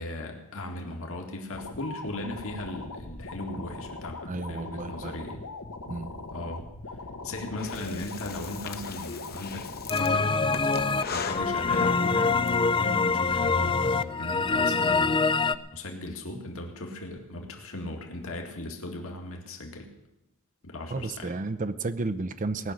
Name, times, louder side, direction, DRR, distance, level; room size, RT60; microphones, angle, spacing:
voice 1, 0.0-5.4 6.3-6.7 7.2-10.6 11.1-19.9 20.6-21.3, left 1 dB, 65° left, 2 dB, 2.1 m, -38 dB
sound 1, 1.5-11.5, left 3 dB, 85° left, 1.4 m, -40 dB
voice 2, 4.3-5.1 5.9-6.1 20.9-22.7, right 3 dB, 35° right, 11 dB, 0.6 m, -32 dB
Breathing, 7.6-12.5, left 5 dB, 45° left, 1.0 m, -38 dB
sound 2, 9.9-15.5, left 4 dB, 25° left, 0.4 m, -25 dB
19.0 x 6.3 x 9.4 m, 0.93 s
head